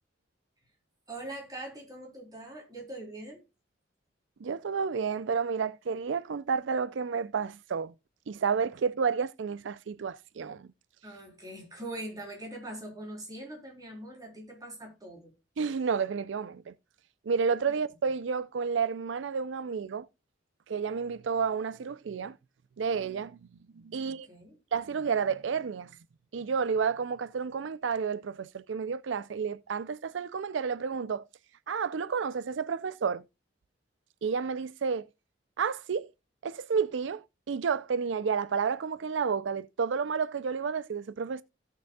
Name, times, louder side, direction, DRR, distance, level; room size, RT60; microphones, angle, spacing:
voice 1, 1.1-3.4 11.0-15.3 17.7-17.8 24.0-24.6, right 1 dB, 20° right, 3.7 m, -42 dB
voice 2, 4.4-7.9 8.3-10.7 15.6-16.7 17.3-20.1 20.7-22.4 22.8-23.4 23.8-24.3 24.7-25.9 26.3-31.2 31.7-33.2 34.2-35.1 35.6-36.1 36.4-41.4, right 6 dB, 80° right, 0.4 m, -31 dB
17.0 x 6.7 x 2.3 m
head